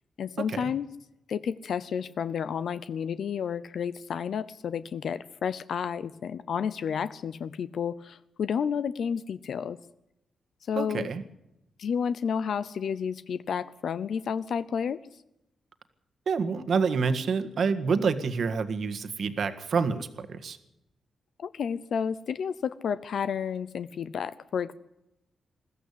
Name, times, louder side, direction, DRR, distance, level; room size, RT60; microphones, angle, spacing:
voice 1, 0.2-0.9 1.3-9.8 10.7-11.1 11.8-15.0 21.4-24.7, left 7 dB, 65° left, 14 dB, 0.6 m, -31 dB
voice 2, 10.8-11.2 16.2-20.6, right 5 dB, 55° right, 9 dB, 1.7 m, -28 dB
21.0 x 15.0 x 8.4 m, 0.91 s
wide cardioid pair, 145°, 0 cm